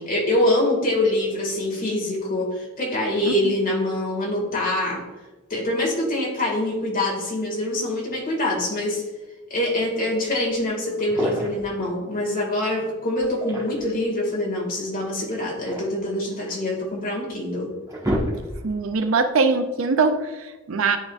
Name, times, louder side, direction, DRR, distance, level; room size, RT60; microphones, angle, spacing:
voice 1, 0.0-5.0 5.5-9.0 9.5-17.7, left 1 dB, 40° left, -3 dB, 1.9 m, -24 dB
sound 1, 10.5-10.6 11.0-11.7 13.2-14.0 15.3-16.7 17.3-17.4 17.7-18.8, equal, 15° right, 1.3 m, -29 dB
voice 2, 18.6-21.0, right 4 dB, 70° right, 8 dB, 0.5 m, -22 dB
11.0 x 3.8 x 2.4 m, 1.2 s
head